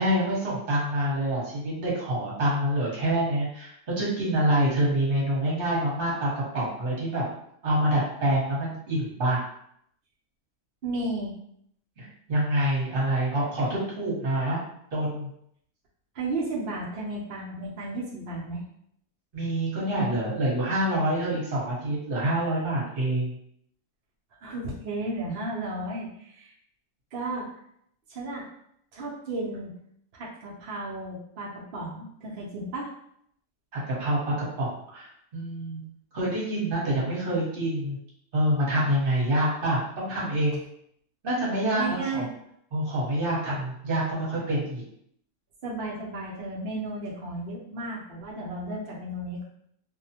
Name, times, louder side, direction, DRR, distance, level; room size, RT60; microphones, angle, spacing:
voice 1, 0.0-7.2 7.6-9.4 12.0-14.6 14.9-15.3 19.3-23.4 33.7-35.8 36.1-38.0 38.3-40.6 41.2-42.2 42.7-44.8, right 1 dB, 40° right, -6 dB, 1.0 m, -26 dB
voice 2, 10.8-11.3 16.1-18.6 24.4-26.5 27.1-27.5 28.1-28.5 28.9-29.7 30.1-32.9 41.8-42.3 45.6-49.4, right 2 dB, 75° right, -4 dB, 0.5 m, -33 dB
2.6 x 2.1 x 2.7 m, 0.71 s
omnidirectional pair, 1.7 m